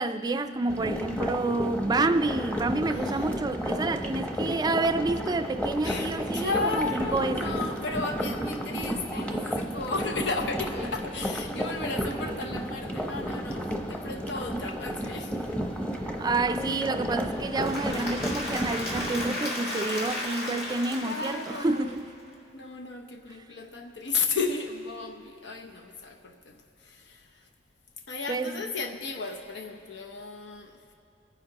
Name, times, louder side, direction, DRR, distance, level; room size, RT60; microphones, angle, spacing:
voice 1, 0.0-7.5 16.2-22.1 28.3-28.6, right 2 dB, 25° right, 0.4 m, -29 dB
sound 1, 0.7-19.3, equal, 10° left, 0.8 m, -32 dB
voice 2, 2.9-3.3 5.8-15.4 21.0-22.0 22.5-27.5 28.1-30.9, left 3 dB, 85° left, 0.8 m, -34 dB
Applause / Crowd, 17.3-22.3, left 1 dB, 60° left, 2.8 m, -35 dB
25.5 x 9.9 x 2.9 m
head